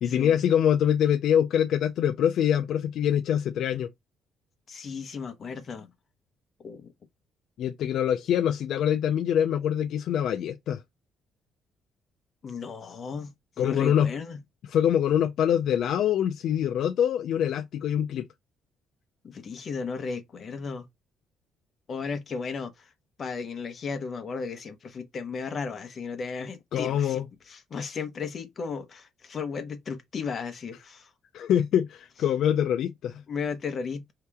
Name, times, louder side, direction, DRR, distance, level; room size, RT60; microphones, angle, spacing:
voice 1, 0.0-3.9 7.6-10.8 13.6-14.1 14.7-18.2 26.7-27.3 31.3-33.2, left 9 dB, 55° left, 0.3 m, -24 dB
voice 2, 4.7-5.9 6.6-6.9 12.4-14.4 19.2-20.9 21.9-22.9 23.2-31.1 33.3-34.1, left 5 dB, 30° left, 0.8 m, -35 dB
4.6 x 2.9 x 3.4 m
cardioid pair, 180°, 0 cm